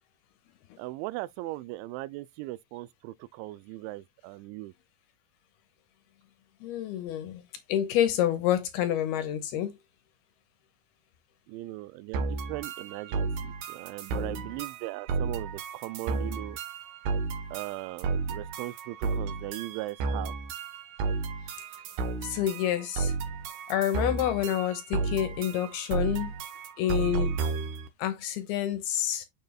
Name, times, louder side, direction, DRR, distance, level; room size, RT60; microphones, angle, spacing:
voice 1, 0.8-4.7 11.5-16.6 17.5-20.3, right 18 dB, 90° right, 2.9 m, -38 dB
voice 2, 6.6-7.4 7.7-9.7 22.2-23.1 23.7-26.3 26.8-27.3 28.0-29.3, left 11 dB, 75° left, 2.7 m, -28 dB
sound 1, 12.1-27.9, right 4 dB, 70° right, 1.9 m, -33 dB
7.5 x 7.1 x 2.3 m
omnidirectional pair, 5.2 m